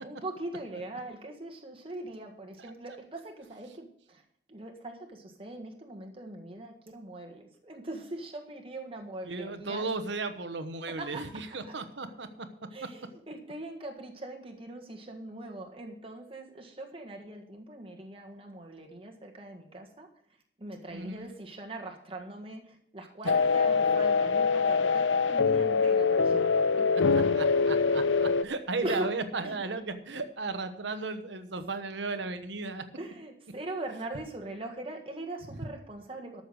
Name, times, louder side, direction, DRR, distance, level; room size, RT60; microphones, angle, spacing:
voice 1, 0.0-4.2 4.5-9.9 10.9-11.8 12.7-20.1 20.6-27.1 28.8-29.1 29.4-29.6 33.0-36.4, right 2 dB, 30° right, 2 dB, 1.6 m, -41 dB
voice 2, 9.2-12.5 20.9-21.3 27.3-32.8, right 3 dB, 75° right, 9 dB, 1.1 m, -35 dB
sound 1, 23.3-28.4, left 5 dB, 85° left, 0.6 m, -24 dB
13.0 x 6.9 x 6.4 m, 0.68 s
head